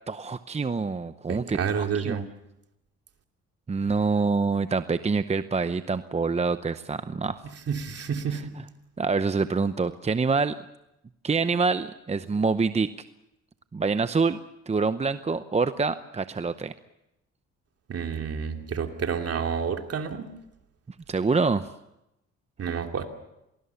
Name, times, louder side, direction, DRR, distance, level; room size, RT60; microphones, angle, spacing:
voice 1, 0.1-2.2 3.7-7.4 9.0-10.6 11.2-12.9 13.7-14.4 14.7-16.7 21.1-21.7, right 4 dB, 20° right, 12 dB, 0.7 m, -26 dB
voice 2, 1.3-2.2 7.7-8.6 17.9-20.3 22.6-23.1, right 6 dB, 50° right, 5 dB, 2.8 m, -29 dB
26.5 x 19.5 x 7.0 m, 0.86 s
cardioid pair, 90°, 30 cm